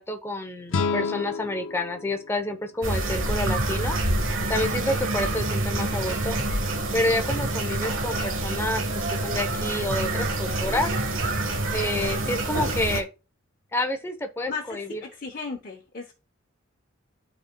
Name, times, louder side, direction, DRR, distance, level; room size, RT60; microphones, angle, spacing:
voice 1, 0.0-4.0 4.5-6.4 6.9-10.9 11.7-13.1 13.7-15.0, left 1 dB, 15° left, 0.9 m, -29 dB
sound 1, 0.7-3.7, left 4 dB, 70° left, 0.6 m, -31 dB
sound 2, 2.8-13.0, right 2 dB, 80° right, 1.3 m, -27 dB
voice 2, 14.5-16.1, left 4 dB, 45° left, 1.0 m, -36 dB
12.5 x 4.3 x 2.3 m
head